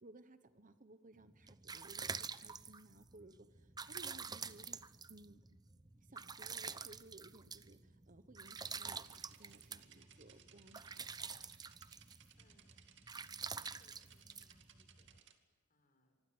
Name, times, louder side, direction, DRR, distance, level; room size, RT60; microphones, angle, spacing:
voice 1, 0.0-4.8 5.1-5.4 6.0-11.1, right 2 dB, 40° right, 11 dB, 1.2 m, -59 dB
sound 1, 1.2-15.2, right 5 dB, 20° right, 0.7 m, -48 dB
sound 2, 8.4-15.3, right 9 dB, 55° right, 2.5 m, -64 dB
voice 2, 12.0-12.9 13.6-16.2, left 1 dB, 40° left, 5 dB, 6.1 m, -75 dB
25.5 x 24.5 x 7.9 m, 1.5 s
head